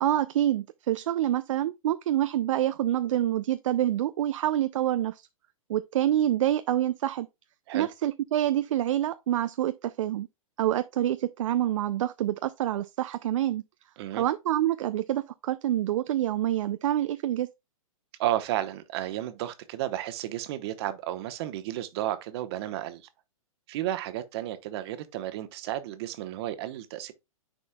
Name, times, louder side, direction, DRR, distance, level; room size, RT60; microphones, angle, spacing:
voice 1, 0.0-5.2 5.7-7.3 7.7-10.3 10.6-13.6 14.1-17.5, right 12 dB, 60° right, 0.5 m, -27 dB
voice 2, 18.2-23.1 23.7-27.1, right 13 dB, 45° right, 1.1 m, -32 dB
10.0 x 4.2 x 2.2 m
hypercardioid pair, 130°, 18 cm